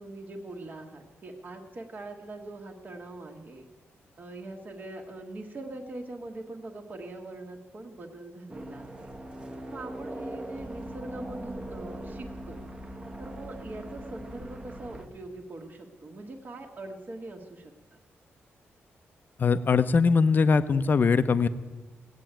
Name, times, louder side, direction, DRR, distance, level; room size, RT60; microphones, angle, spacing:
voice 1, 0.0-3.7 4.2-9.1 9.7-12.6 13.2-18.0, right 2 dB, 40° right, 0 dB, 1.5 m, -42 dB
sound 1, 8.5-15.1, right 1 dB, 20° right, 1.0 m, -40 dB
voice 2, 19.4-21.5, left 5 dB, 45° left, 12 dB, 0.7 m, -21 dB
17.0 x 8.2 x 8.9 m, 1.3 s
wide cardioid pair, 120°, 5 cm